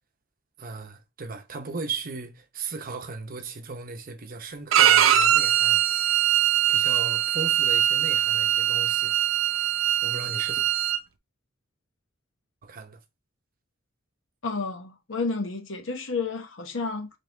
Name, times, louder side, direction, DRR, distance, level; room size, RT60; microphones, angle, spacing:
voice 1, 0.6-5.8 6.7-9.2 10.0-10.6 12.6-13.0, right 4 dB, 45° right, 0.8 m, -37 dB
Bowed string instrument, 4.7-11.0, right 11 dB, 90° right, 0.5 m, -22 dB
voice 2, 14.4-17.1, left 4 dB, 70° left, 1.0 m, -31 dB
4.1 x 3.5 x 3.3 m
head